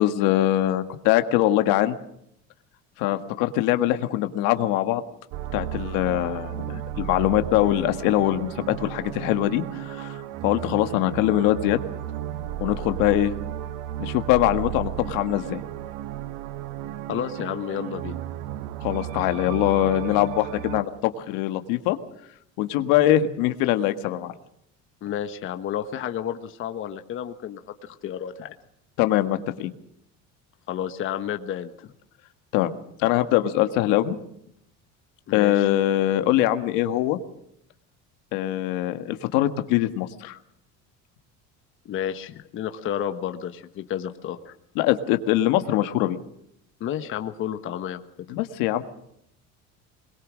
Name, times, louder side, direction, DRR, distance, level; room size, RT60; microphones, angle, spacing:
voice 1, 0.0-1.9 3.0-5.0 5.5-11.8 12.6-13.3 14.0-15.6 18.8-22.0 22.6-24.3 29.0-29.7 32.5-32.7 33.0-34.2 35.3-37.2 38.3-40.4 44.7-46.2 48.3-48.8, left 13 dB, 90° left, 9 dB, 1.7 m, -23 dB
sound 1, 5.3-20.8, right 12 dB, 85° right, 1.2 m, -34 dB
voice 2, 17.1-18.2 25.0-28.5 30.7-31.9 35.3-35.7 41.8-44.5 46.8-48.0, left 10 dB, 40° left, 8 dB, 1.4 m, -31 dB
23.0 x 21.5 x 6.3 m, 0.74 s
cardioid pair, 165°, 31 cm